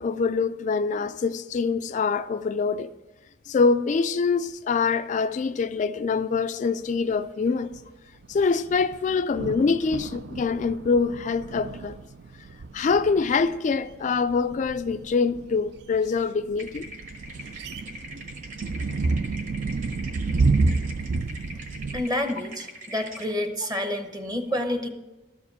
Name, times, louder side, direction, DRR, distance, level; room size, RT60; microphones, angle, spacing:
voice 1, 0.0-2.9 3.5-7.7 8.3-12.0 12.7-16.9, left 4 dB, 45° left, 0.3 m, -24 dB
sound 1, 6.9-7.2 7.6-7.8 8.2-22.0, right 3 dB, 65° right, 0.4 m, -30 dB
sound 2, 16.6-23.3, right 1 dB, 45° right, 1.6 m, -42 dB
voice 2, 21.9-24.9, left 1 dB, 20° right, 0.8 m, -28 dB
13.0 x 4.9 x 6.7 m
head